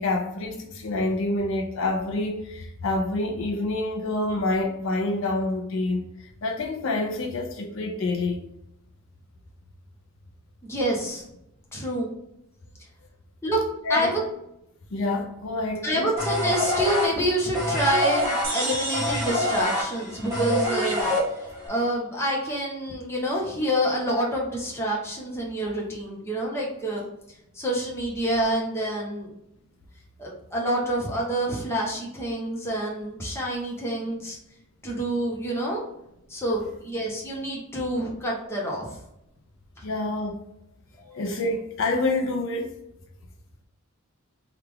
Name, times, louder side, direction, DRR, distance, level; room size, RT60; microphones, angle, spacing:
voice 1, 0.0-6.1 6.4-8.4 13.8-14.2 14.9-16.1 39.8-40.4 41.1-42.8, left 2 dB, 65° left, 0.5 m, -27 dB
voice 2, 10.6-11.2 11.7-12.1 13.4-13.6 13.9-14.2 15.8-27.0 27.5-29.3 30.2-34.4 34.8-35.8 36.3-39.0 40.9-41.2, right 1 dB, 10° left, 0.8 m, -27 dB
sound 1, 16.2-21.7, left 1 dB, 10° right, 1.3 m, -26 dB
sound 2, 18.4-21.0, right 1 dB, 65° right, 1.0 m, -33 dB
3.3 x 2.4 x 3.5 m
head